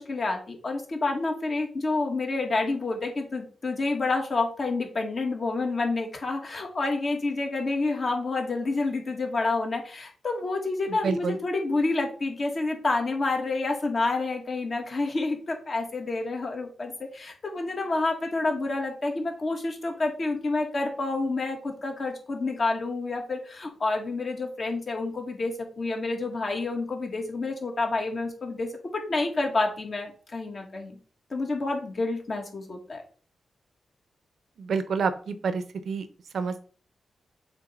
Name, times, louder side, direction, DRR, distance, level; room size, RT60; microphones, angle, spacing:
voice 1, 0.0-31.0 31.3-33.0, left 3 dB, 50° left, 2 dB, 2.0 m, -29 dB
voice 2, 10.9-11.4 34.6-36.1 36.3-36.6, right 5 dB, 75° right, 11 dB, 0.8 m, -28 dB
7.2 x 3.3 x 5.3 m, 0.41 s
cardioid pair, 90°, 0 cm